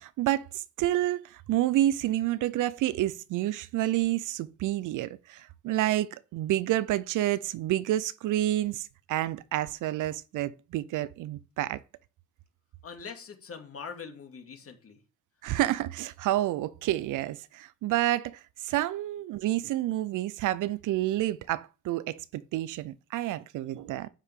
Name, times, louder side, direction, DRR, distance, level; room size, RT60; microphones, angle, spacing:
voice 1, 0.0-11.8 15.4-24.1, right 14 dB, 85° right, 0.7 m, -29 dB
voice 2, 12.8-15.0, left 5 dB, 50° left, 2.6 m, -43 dB
10.0 x 8.2 x 3.7 m
cardioid pair, 90°, 30 cm